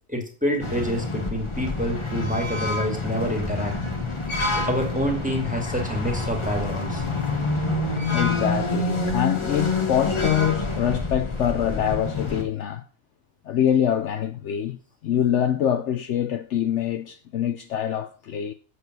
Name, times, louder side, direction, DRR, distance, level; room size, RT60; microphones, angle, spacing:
voice 1, 0.1-3.8 4.5-7.0, equal, 5° right, 2.2 m, -27 dB
sound 1, 0.6-12.4, left 3 dB, 25° left, 1.3 m, -27 dB
voice 2, 8.1-12.8 13.5-14.8 15.0-18.5, left 9 dB, 65° left, 0.9 m, -24 dB
8.0 x 6.5 x 6.1 m
omnidirectional pair, 1.4 m